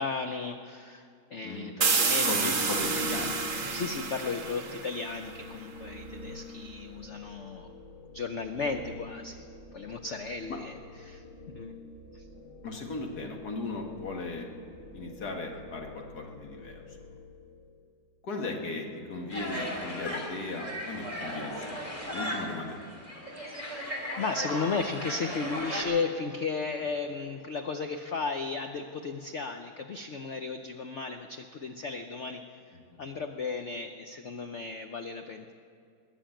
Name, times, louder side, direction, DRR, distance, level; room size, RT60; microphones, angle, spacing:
voice 1, 0.0-2.6 3.7-7.7 8.1-9.5 9.7-11.2 11.5-11.7 12.1-12.2 23.4-32.4 33.0-35.5, left 4 dB, 70° left, 6 dB, 0.6 m, -35 dB
sound 1, 1.8-5.4, right 4 dB, 35° right, 0.9 m, -29 dB
sound 2, 2.0-17.8, left 2 dB, 35° left, 1.4 m, -45 dB
voice 2, 2.2-3.4 10.5-10.6 12.6-14.5 14.9-16.8 18.2-21.8 22.0-22.8 32.9-33.0, left 3 dB, 55° left, 2 dB, 2.1 m, -37 dB
sound 3, 19.3-25.8, equal, 15° left, 2.7 m, -36 dB
21.0 x 7.1 x 8.9 m, 2.3 s
omnidirectional pair, 2.1 m